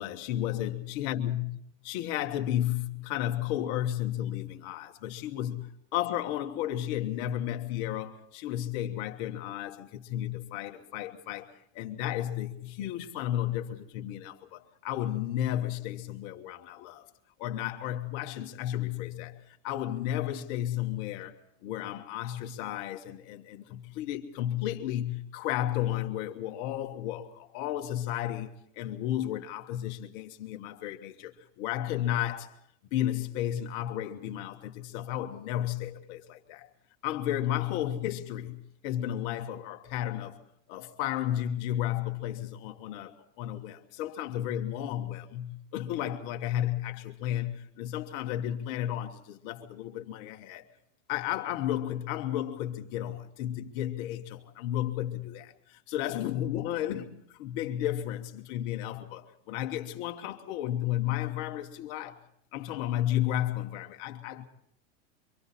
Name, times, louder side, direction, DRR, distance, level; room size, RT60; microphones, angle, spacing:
voice 1, 0.0-1.6 1.8-17.1 17.4-21.3 21.6-32.6 32.9-36.7 37.0-40.4 40.7-50.6 51.1-62.2 62.5-64.4, left 12 dB, 35° left, 1.2 m, -33 dB
28.0 x 24.5 x 4.1 m
supercardioid pair, 175°, 40 cm